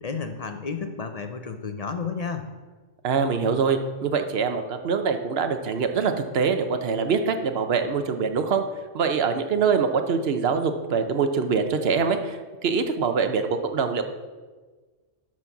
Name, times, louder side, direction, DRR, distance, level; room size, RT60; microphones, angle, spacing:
voice 1, 0.0-2.5, left 5 dB, 55° left, 7 dB, 0.4 m, -32 dB
voice 2, 3.0-8.6 8.9-14.0, right 5 dB, 55° right, 7 dB, 0.9 m, -24 dB
12.0 x 4.2 x 6.0 m, 1.4 s
omnidirectional pair, 1.3 m